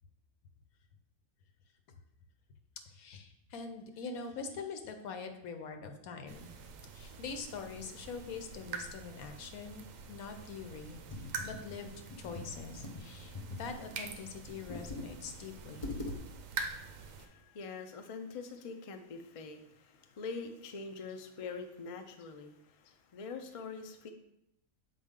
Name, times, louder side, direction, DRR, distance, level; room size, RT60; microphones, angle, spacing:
voice 1, 2.9-6.5 6.9-11.0 11.4-15.9, left 5 dB, 85° left, 6 dB, 1.2 m, -44 dB
sound 1, 6.3-17.3, right 5 dB, 70° right, 1.0 m, -46 dB
Computer keyboard, 11.1-13.8 14.5-15.1 15.4-15.5 15.8-16.2, left 2 dB, 30° left, 0.7 m, -42 dB
voice 2, 16.7-24.1, left 4 dB, 65° left, 5 dB, 0.3 m, -44 dB
7.2 x 4.2 x 3.7 m, 0.81 s
omnidirectional pair, 1.5 m